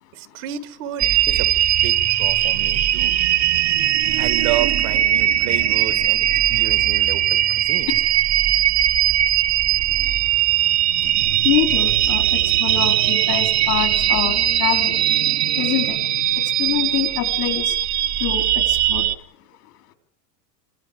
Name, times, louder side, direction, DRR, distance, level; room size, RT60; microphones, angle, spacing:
voice 1, 0.1-1.6 1.8-3.2 4.1-7.9, right 13 dB, 60° right, 12 dB, 1.9 m, -31 dB
sound 1, 1.0-19.1, right 12 dB, 35° right, 1.0 m, -19 dB
voice 2, 11.4-15.0 15.6-16.0 16.6-17.8 18.2-19.1, left 13 dB, 75° left, 6 dB, 4.0 m, -25 dB
27.5 x 25.0 x 5.1 m, 0.63 s
supercardioid pair, 125°, 47 cm